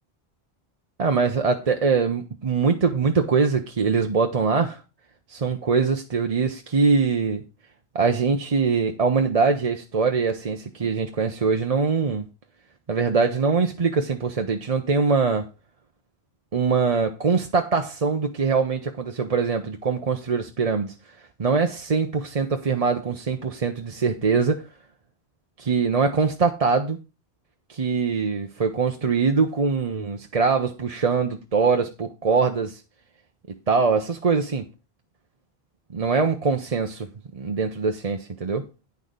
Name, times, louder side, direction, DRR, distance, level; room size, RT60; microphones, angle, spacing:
voice 1, 1.0-4.8 5.3-7.4 7.9-12.3 12.9-15.5 16.5-20.9 21.4-24.7 25.6-27.0 27.7-32.8 33.7-34.7 35.9-37.1 37.3-38.6, right 5 dB, 40° right, 0.8 m, -23 dB
9.5 x 6.3 x 5.2 m
omnidirectional pair, 1.1 m